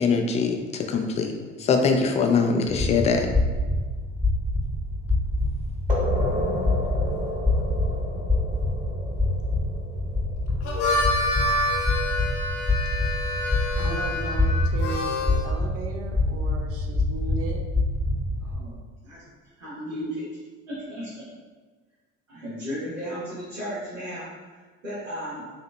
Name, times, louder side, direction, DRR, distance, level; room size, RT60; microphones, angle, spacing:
voice 1, 0.0-1.3 1.6-3.3, left 5 dB, 20° left, 4 dB, 0.3 m, -22 dB
sound 1, 2.7-18.6, left 2 dB, ahead, 0.7 m, -26 dB
sound 2, 5.9-11.2, equal, 20° right, 1.1 m, -31 dB
Harmonica, 10.5-15.4, left 2 dB, 60° left, 0.8 m, -27 dB
voice 2, 13.8-17.6, right 3 dB, 40° right, 2 dB, 0.5 m, -36 dB
voice 3, 18.4-19.2 19.6-20.3 20.7-21.2 22.3-25.5, equal, 80° right, -12 dB, 1.2 m, -35 dB
5.5 x 2.8 x 2.2 m, 1.4 s
figure-of-eight pair, 60°, 38 cm